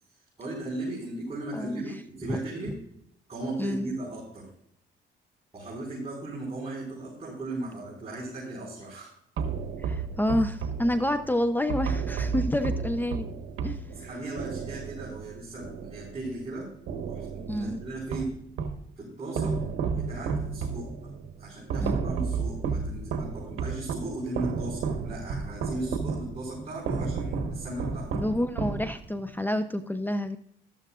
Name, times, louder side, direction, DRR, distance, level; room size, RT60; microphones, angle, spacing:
voice 1, 0.4-2.7 3.3-4.4 5.5-9.1 13.9-16.7 17.1-18.3 19.0-19.5 19.9-20.9 21.4-28.1, right 2 dB, 30° right, -6 dB, 5.1 m, -37 dB
voice 2, 3.6-3.9 9.8-13.3 13.6-14.1 17.5-17.8 21.8-21.9 28.1-30.4, left 1 dB, 10° left, 9 dB, 0.7 m, -28 dB
sound 1, 9.4-16.5 16.9-18.9 19.4-29.3, right 5 dB, 80° right, 1.3 m, -32 dB
13.0 x 12.5 x 2.5 m, 0.72 s
cardioid pair, 90°, 20 cm